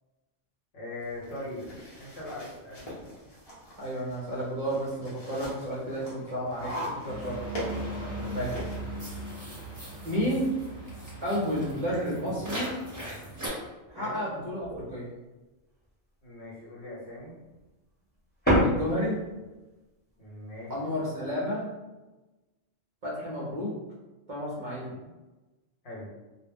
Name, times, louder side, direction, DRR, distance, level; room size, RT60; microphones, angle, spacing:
voice 1, 0.7-1.7 2.0-3.2 8.0-8.3 14.0-14.2 16.2-17.4 20.2-21.0 25.8-26.1, left 1 dB, 60° left, -6 dB, 1.1 m, -41 dB
sound 1, 1.0-8.8, equal, 35° left, 0.8 m, -41 dB
voice 2, 3.8-6.7 7.0-7.4 8.3-8.6 10.0-10.5 11.2-12.7 13.9-15.1 18.6-19.2 20.7-21.7 23.0-23.7 24.3-25.0, equal, 50° right, -6 dB, 0.7 m, -31 dB
sound 2, 6.6-13.5, right 1 dB, 15° right, 0.7 m, -38 dB
sound 3, 10.7-10.8 11.2-13.5 13.9-15.2 15.6-16.5 16.8-17.7 18.0-19.5 20.1-21.1, equal, 10° left, 0.9 m, -32 dB
2.3 x 2.0 x 3.5 m, 1.1 s
omnidirectional pair, 1.3 m